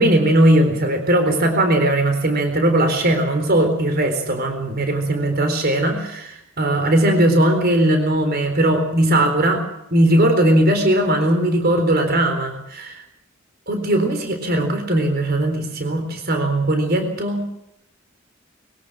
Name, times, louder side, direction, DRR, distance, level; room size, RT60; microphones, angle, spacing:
voice 1, 0.0-9.6 9.9-13.0 13.7-17.5, right 1 dB, 50° right, 6 dB, 4.0 m, -18 dB
22.5 x 17.5 x 7.5 m, 0.78 s
head